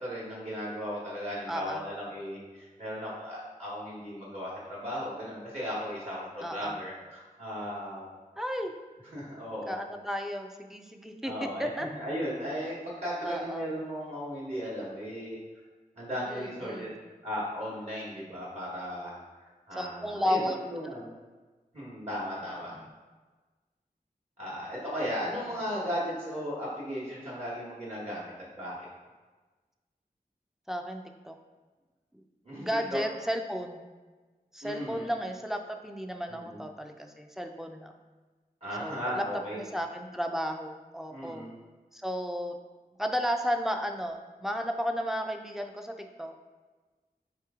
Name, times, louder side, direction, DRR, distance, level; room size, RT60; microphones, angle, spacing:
voice 1, 0.0-8.1 9.1-9.8 11.2-15.4 16.0-16.9 17.2-21.1 21.7-22.7 24.4-28.7 32.4-33.0 34.6-35.1 36.3-36.6 38.6-39.6 41.1-41.5, equal, 40° right, -8 dB, 1.1 m, -36 dB
voice 2, 1.5-1.8 6.4-6.8 8.3-8.7 9.6-11.9 13.2-13.7 16.3-16.9 19.7-20.6 20.8-20.9 22.4-22.9 25.3-25.6 30.7-31.3 32.1-32.2 32.6-33.8 34.5-37.9 38.8-39.3 39.5-41.4 41.9-42.6 43.0-46.3, equal, ahead, 4 dB, 0.4 m, -33 dB
4.0 x 2.9 x 3.6 m, 1.3 s
wide cardioid pair, 45°, 16 cm